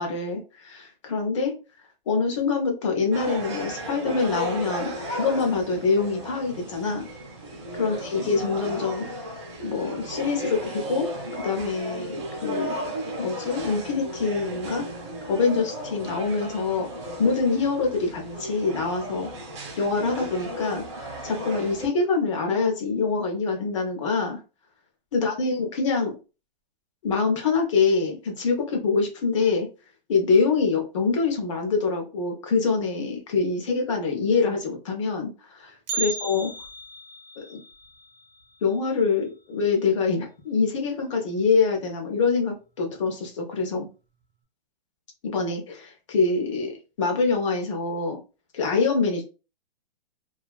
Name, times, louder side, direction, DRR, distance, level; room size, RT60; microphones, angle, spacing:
voice 1, 0.0-1.5 2.1-7.1 7.7-9.3 9.6-11.1 11.4-12.7 13.2-14.9 15.3-16.9 17.2-19.3 19.8-24.4 25.1-26.2 27.0-29.7 30.1-36.5 37.4-37.6 38.6-43.9 45.2-48.2 48.5-49.2, left 4 dB, 30° left, 2 dB, 0.6 m, -25 dB
sound 1, 3.1-21.9, equal, 30° right, 0.6 m, -35 dB
Bell, 35.9-40.0 40.2-40.3 40.8-40.9 41.7-41.8 42.6-42.9 43.2-43.3, right 4 dB, 70° right, 0.5 m, -37 dB
2.7 x 2.3 x 2.3 m, 0.32 s
hypercardioid pair, 170°, 29 cm